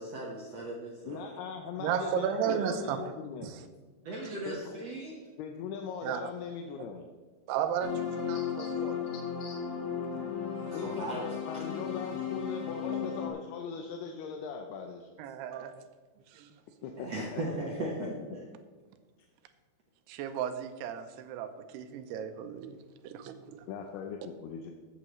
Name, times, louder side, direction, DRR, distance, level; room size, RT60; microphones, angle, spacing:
voice 1, 0.0-1.2 4.0-5.2 10.6-11.2 17.0-18.5, right 2 dB, 70° right, -3 dB, 1.6 m, -37 dB
voice 2, 1.1-3.5 4.5-4.8 5.4-7.1 8.6-8.7 9.4-9.6 10.7-15.1 16.8-17.4 17.8-17.9 23.7-24.7, left 6 dB, 80° left, 3 dB, 2.6 m, -40 dB
voice 3, 1.8-3.1 3.4-3.7 4.3-4.4 6.0-6.3 7.5-9.0 15.2-15.8 16.3-16.6 20.1-22.8 23.0-23.7, right 8 dB, 85° right, 9 dB, 2.7 m, -34 dB
sound 1, 7.8-13.3, left 7 dB, 55° left, 2.2 m, -35 dB
14.0 x 8.6 x 3.1 m, 1.4 s
omnidirectional pair, 4.7 m